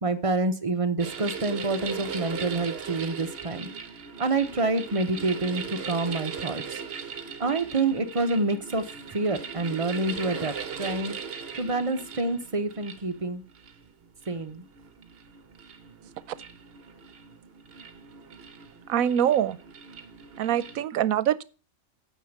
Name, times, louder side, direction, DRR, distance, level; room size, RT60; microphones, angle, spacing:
voice 1, 0.0-3.7 4.2-6.8 7.4-8.8 9.1-11.1 11.5-13.4 14.3-14.6, right 3 dB, 30° right, 0.7 m, -27 dB
sound 1, 1.0-20.8, right 6 dB, 50° right, 1.1 m, -39 dB
voice 2, 18.9-19.6 20.4-21.4, right 10 dB, 85° right, 1.1 m, -24 dB
9.2 x 5.6 x 6.5 m
omnidirectional pair, 1.4 m